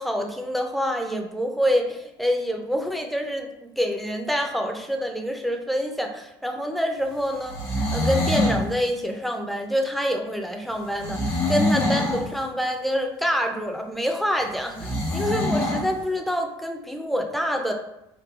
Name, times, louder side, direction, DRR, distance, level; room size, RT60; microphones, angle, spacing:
voice 1, 0.0-17.7, equal, ahead, 3 dB, 0.5 m, -26 dB
sound 1, 7.4-8.6 11.0-12.3 14.8-15.9, left 1 dB, 85° left, 1.1 m, -24 dB
3.7 x 2.6 x 2.4 m, 0.87 s
hypercardioid pair, 70°, 13 cm